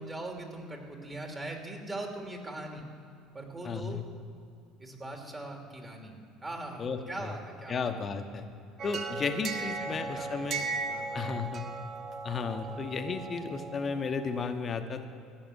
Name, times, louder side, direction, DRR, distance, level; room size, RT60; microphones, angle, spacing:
voice 1, 0.0-2.8 3.3-4.0 4.8-6.2 6.4-7.8 9.5-10.3 10.6-11.3 12.6-12.8, right 1 dB, 20° right, 1 dB, 2.9 m, -41 dB
voice 2, 3.6-4.0 6.8-7.3 7.7-8.4 8.8-10.7 11.1-11.7 12.2-15.0, left 5 dB, 35° left, 8 dB, 1.1 m, -34 dB
sound 1, 8.8-14.5, right 4 dB, 45° right, 1.1 m, -37 dB
16.5 x 6.7 x 8.1 m, 2.6 s
hypercardioid pair, 65°, 0 cm